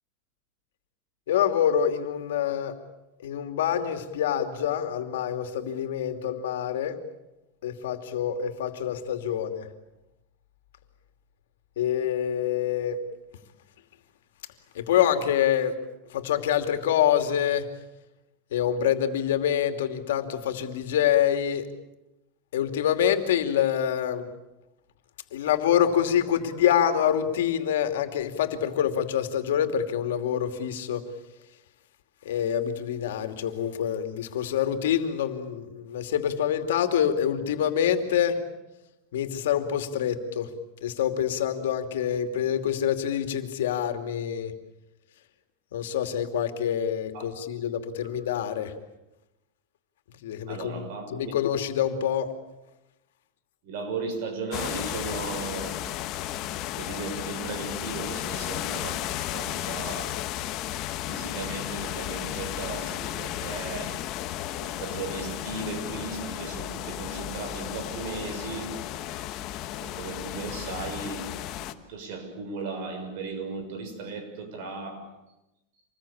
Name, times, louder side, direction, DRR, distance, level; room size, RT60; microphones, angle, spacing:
voice 1, 1.3-2.8 3.2-7.0 7.6-9.7 11.8-13.0 14.7-15.8 16.1-17.7 18.5-21.7 22.5-24.3 25.3-31.0 32.2-38.4 39.1-40.5 40.8-44.5 45.7-48.7 50.2-50.8 51.1-52.3, left 9 dB, 85° left, 8 dB, 2.7 m, -26 dB
voice 2, 47.1-47.6 50.5-51.1 53.6-55.8 56.7-60.1 61.1-64.0 64.6-68.8 69.8-71.3 71.6-75.1, right 4 dB, 60° right, 6 dB, 6.3 m, -36 dB
sound 1, 54.5-71.7, left 13 dB, 40° left, 1.4 m, -34 dB
26.5 x 21.0 x 8.7 m, 0.95 s
supercardioid pair, 150°, 0 cm